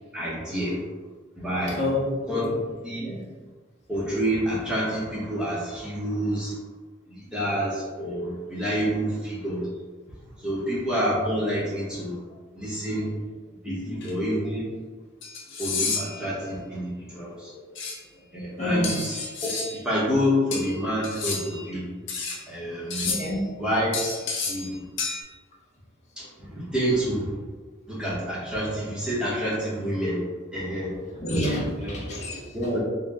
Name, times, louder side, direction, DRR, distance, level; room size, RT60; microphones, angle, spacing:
voice 1, 0.1-0.8 1.4-1.8 2.3-3.0 3.9-6.6 7.1-9.7 10.4-12.2 12.5-13.1 13.6-14.7 15.6-17.5 18.3-18.9 19.4-21.9 22.5-23.1 23.6-23.9 24.4-24.8 26.2-27.3 27.9-30.2 30.5-31.0 31.8-32.0 32.5-32.8, equal, 5° right, -8 dB, 0.8 m, -28 dB
voice 2, 1.8-2.6 3.0-3.2 7.2-7.3 12.9-13.2 13.7-13.9 16.1-16.2 17.5-17.7 18.5-19.1 23.1-23.4 31.0-32.7, left 1 dB, 35° left, -4 dB, 0.9 m, -29 dB
sound 1, 14.0-14.1 15.2-16.2 17.7-18.0 18.8-19.8 20.5-21.6 22.1-22.4 22.9-23.4 23.9-24.7 25.0-25.2, left 4 dB, 75° left, 0.8 m, -31 dB
4.2 x 2.1 x 3.5 m, 1.4 s
head